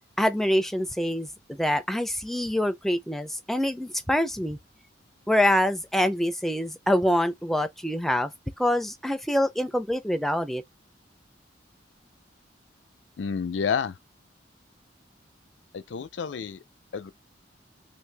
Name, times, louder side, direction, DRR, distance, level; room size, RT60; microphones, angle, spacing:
voice 1, 0.2-4.6 5.3-8.3 8.6-10.6, left 1 dB, ahead, 0.4 m, -25 dB
voice 2, 13.2-14.0 15.7-16.6 16.9-17.1, left 6 dB, 75° left, 0.4 m, -29 dB
2.7 x 2.7 x 3.3 m
head